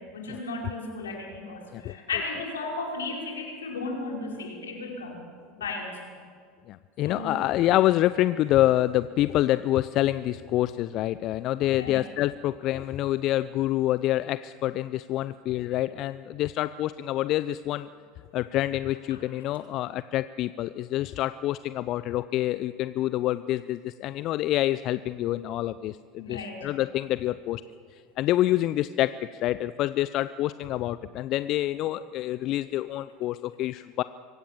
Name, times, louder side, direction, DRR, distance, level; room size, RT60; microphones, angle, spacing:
voice 1, 0.0-5.2 5.6-6.0 7.0-7.4 11.7-12.0 19.1-19.2 26.2-26.7, left 3 dB, 80° left, 0 dB, 4.6 m, -35 dB
voice 2, 6.7-17.9 18.3-27.6 28.2-34.0, left 14 dB, 50° left, 15 dB, 0.5 m, -27 dB
24.5 x 16.5 x 7.4 m, 2.1 s
figure-of-eight pair, 75°, 0 cm